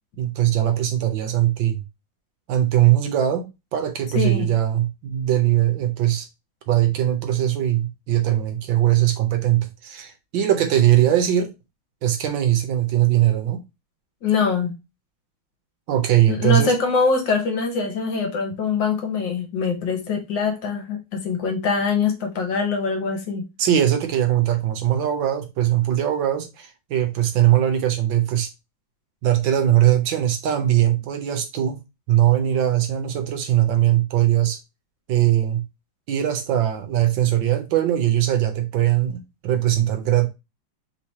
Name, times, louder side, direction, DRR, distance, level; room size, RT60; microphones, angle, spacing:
voice 1, 0.2-1.8 2.5-6.3 6.7-11.5 12.0-13.6 15.9-16.7 23.6-28.5 29.2-31.8 32.1-34.6 35.1-35.6 36.1-40.3, right 12 dB, 70° right, 1.4 m, -20 dB
voice 2, 4.1-4.5 14.2-14.8 16.3-23.4, left 5 dB, 65° left, 1.7 m, -23 dB
3.7 x 3.1 x 4.0 m
omnidirectional pair, 2.3 m